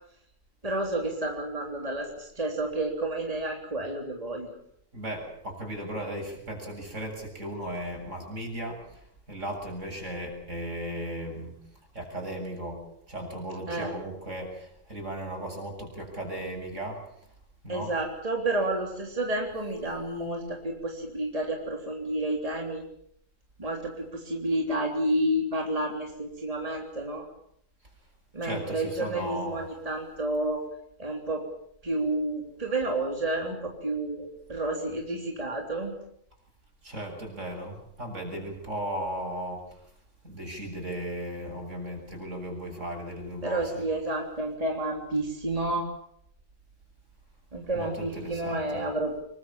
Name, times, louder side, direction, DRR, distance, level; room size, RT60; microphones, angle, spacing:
voice 1, 0.6-4.6 13.7-13.9 17.7-22.8 23.6-27.3 28.3-30.6 31.0-31.4 31.8-35.9 43.4-45.9 47.5-49.3, right 1 dB, 25° right, 1 dB, 3.5 m, -30 dB
voice 2, 4.9-11.6 11.9-17.3 17.6-17.9 28.4-29.6 36.8-39.9 40.2-43.9 47.7-48.9, right 1 dB, 65° right, 2 dB, 8.0 m, -36 dB
25.5 x 23.0 x 7.3 m, 0.71 s
omnidirectional pair, 1.4 m